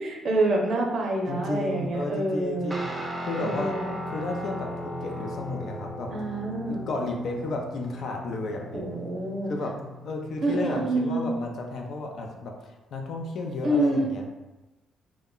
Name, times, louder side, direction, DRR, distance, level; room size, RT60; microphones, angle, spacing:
voice 1, 0.0-2.8 3.4-3.9 6.1-6.9 8.7-9.5 10.4-11.3 13.6-14.1, right 1 dB, 60° right, 1 dB, 0.5 m, -27 dB
voice 2, 1.3-2.8 3.2-3.8 4.1-6.1 6.7-9.0 9.5-9.7 10.0-14.3, left 2 dB, 65° left, 2 dB, 0.5 m, -33 dB
Guitar, 2.7-10.8, equal, 15° right, 0.5 m, -37 dB
2.2 x 2.0 x 3.7 m, 1.1 s
cardioid pair, 90°, 0 cm